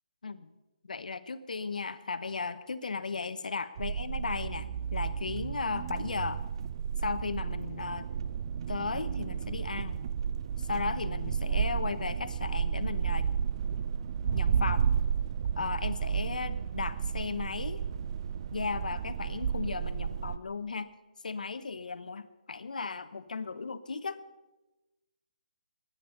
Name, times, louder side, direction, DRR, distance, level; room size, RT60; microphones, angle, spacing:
voice 1, 0.8-6.5 7.0-8.1 8.7-10.0 10.6-13.3 14.2-14.9 15.5-17.8 18.5-20.9 21.2-24.2, left 4 dB, 75° left, 12 dB, 1.0 m, -36 dB
sound 1, 3.8-20.4, right 7 dB, 45° right, 0.6 m, -32 dB
23.5 x 9.8 x 5.6 m, 1.1 s
hypercardioid pair, 145°, 4 cm